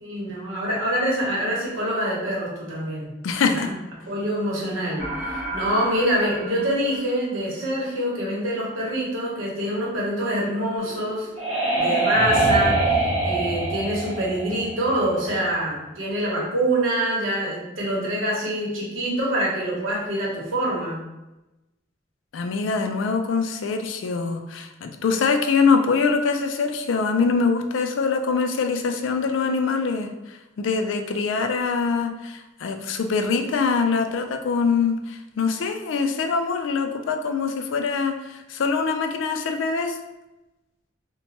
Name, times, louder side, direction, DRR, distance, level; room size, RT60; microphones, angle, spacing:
voice 1, 0.0-3.1 3.5-3.8 4.1-11.3 11.8-21.1, right 1 dB, 85° right, -4 dB, 0.9 m, -25 dB
voice 2, 3.2-3.7 22.3-40.0, left 5 dB, 75° left, 6 dB, 0.3 m, -24 dB
sound 1, 5.0-7.6, right 1 dB, 20° left, 1.0 m, -34 dB
sound 2, 10.8-15.4, right 2 dB, 30° right, 0.7 m, -23 dB
2.9 x 2.1 x 2.8 m, 1.0 s
head